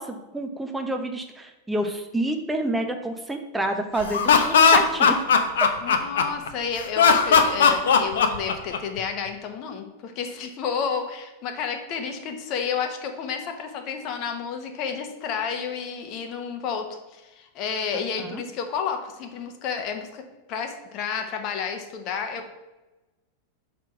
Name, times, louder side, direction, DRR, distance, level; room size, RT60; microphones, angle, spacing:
voice 1, 0.0-5.2 18.2-18.4, right 1 dB, 10° right, 4 dB, 1.0 m, -28 dB
Laughter, 4.0-6.5 7.0-9.0, left 5 dB, 60° left, 0.7 m, -18 dB
voice 2, 5.8-16.9 17.1-20.2 20.5-22.5, left 6 dB, 40° left, 5 dB, 1.1 m, -31 dB
5.7 x 4.8 x 5.8 m, 1.1 s
figure-of-eight pair, 90°, 0 cm